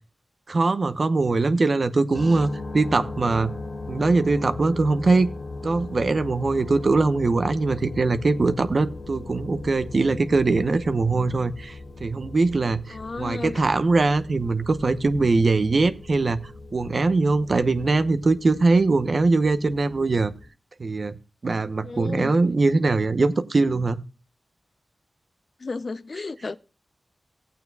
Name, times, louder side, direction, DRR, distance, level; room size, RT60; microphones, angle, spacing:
voice 1, 0.5-3.5 3.9-5.3 5.6-16.4 16.7-20.3 20.8-21.2 21.4-24.0 26.2-26.3, right 3 dB, 55° right, 0.9 m, -22 dB
sound 1, 2.1-20.5, left 2 dB, 75° left, 2.2 m, -38 dB
voice 2, 12.9-13.6 21.8-22.3 25.6-26.6, left 3 dB, 55° left, 0.7 m, -33 dB
16.5 x 8.7 x 2.4 m
wide cardioid pair, 70°, 0 cm